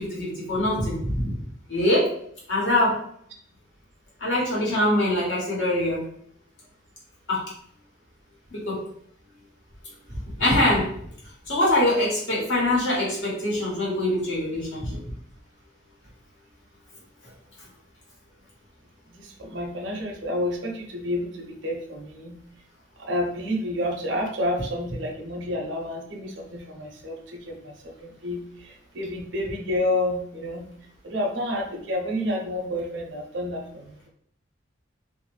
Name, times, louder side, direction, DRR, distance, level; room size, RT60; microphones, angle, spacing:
voice 1, 0.0-1.3 1.7-2.1 2.5-3.0 4.2-6.0 7.3-7.4 8.5-8.8 10.4-10.9 11.5-15.0, left 1 dB, 75° left, -5 dB, 1.3 m, -23 dB
voice 2, 19.1-22.4 23.0-30.7 31.0-34.1, left 1 dB, 70° right, 0 dB, 0.6 m, -30 dB
2.5 x 2.1 x 3.2 m, 0.66 s
head